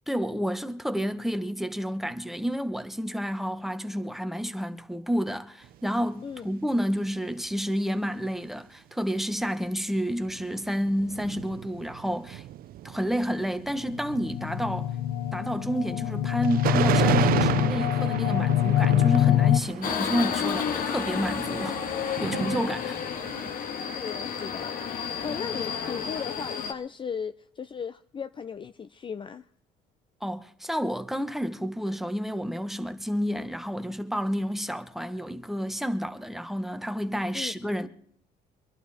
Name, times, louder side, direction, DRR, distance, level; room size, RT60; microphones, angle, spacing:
voice 1, 0.1-12.4 12.8-14.9 15.3-21.8 22.1-23.0 30.2-37.9, equal, ahead, 1.2 m, -30 dB
sound 1, 5.6-5.9 6.5-6.6 7.0-7.1 7.5-7.6 10.1-23.6, right 13 dB, 60° right, 0.5 m, -33 dB
sound 2, 13.9-19.6, left 12 dB, 90° left, 0.7 m, -24 dB
Subway metro underground, 19.8-26.7, left 7 dB, 55° left, 1.8 m, -31 dB
voice 2, 23.9-29.4 37.3-37.7, left 6 dB, 30° left, 0.5 m, -37 dB
25.0 x 11.5 x 4.3 m
cardioid pair, 110°, 17 cm